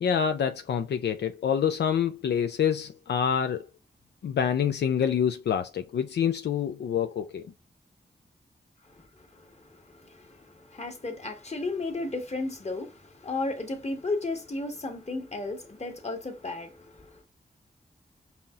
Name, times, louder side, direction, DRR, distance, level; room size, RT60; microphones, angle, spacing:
voice 1, 0.0-3.7 4.2-7.5, left 8 dB, 80° left, 0.4 m, -26 dB
voice 2, 8.9-17.2, left 2 dB, 40° left, 1.4 m, -34 dB
5.6 x 2.8 x 2.4 m
cardioid pair, 50°, 17 cm